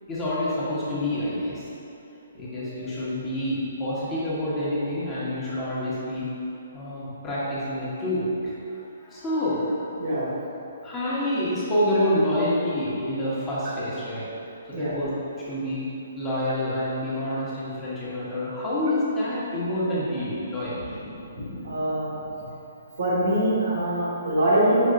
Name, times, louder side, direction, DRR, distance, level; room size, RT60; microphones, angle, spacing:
voice 1, 0.1-1.6 2.3-6.3 6.7-9.9 10.8-14.2 14.7-15.1 15.4-21.0, left 1 dB, 20° left, -10 dB, 1.2 m, -27 dB
voice 2, 10.0-10.3 14.7-15.0 21.3-22.1 23.0-24.9, right 1 dB, 65° right, -8 dB, 1.4 m, -23 dB
5.4 x 3.6 x 2.5 m, 2.8 s
figure-of-eight pair, 130°, 0 cm